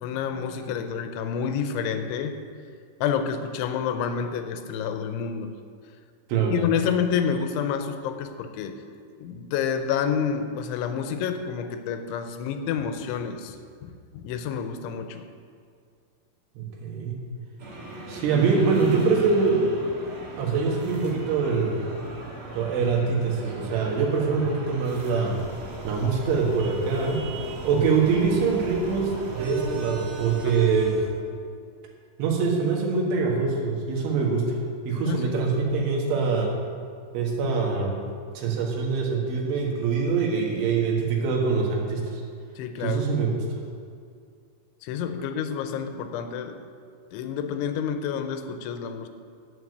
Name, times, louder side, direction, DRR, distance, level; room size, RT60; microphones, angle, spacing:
voice 1, 0.0-2.3 3.0-5.6 6.5-8.8 9.2-13.6 13.8-15.3 30.4-30.6 35.0-35.4 42.6-43.1 44.8-46.6 47.1-49.1, left 7 dB, 85° left, 8 dB, 3.1 m, -29 dB
voice 2, 16.6-17.2 18.1-19.6 20.4-22.0 22.6-25.4 25.8-27.2 27.6-31.0 32.2-34.6 34.9-36.5 37.1-38.1 38.4-42.2 42.8-43.4, right 5 dB, 90° right, -1 dB, 4.1 m, -24 dB
sound 1, 17.6-31.1, right 2 dB, 60° right, 1.3 m, -38 dB
9.5 x 8.9 x 7.9 m, 2.2 s
omnidirectional pair, 5.3 m